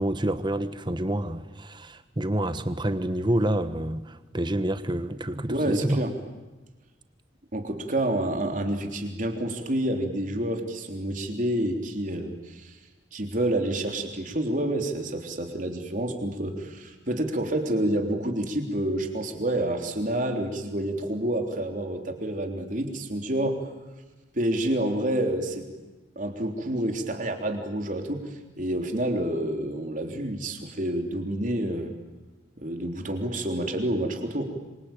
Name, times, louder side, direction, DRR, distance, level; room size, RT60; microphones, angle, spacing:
voice 1, 0.0-6.0, right 1 dB, 25° right, 11 dB, 1.3 m, -28 dB
voice 2, 5.5-6.1 7.5-12.7 13.1-23.6 24.3-25.7 26.2-28.2 28.6-31.9 32.6-34.4, right 1 dB, 45° right, 4 dB, 3.6 m, -28 dB
27.0 x 24.0 x 9.1 m, 1.2 s
head